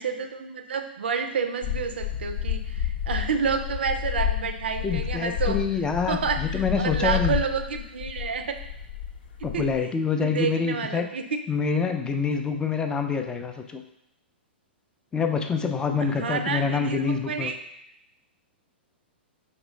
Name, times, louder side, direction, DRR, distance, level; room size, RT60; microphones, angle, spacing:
voice 1, 0.0-5.6 6.1-8.7 9.4-9.7 10.2-11.4 16.0-17.6, right 6 dB, 70° right, 7 dB, 0.5 m, -29 dB
sound 1, 1.6-9.8, left 10 dB, 60° left, 0.7 m, -30 dB
voice 2, 4.8-7.4 9.4-11.1 11.5-13.8 15.1-17.5, left 5 dB, 15° left, 5 dB, 0.4 m, -26 dB
5.1 x 3.1 x 3.2 m, 0.81 s
figure-of-eight pair, 110°, 6 cm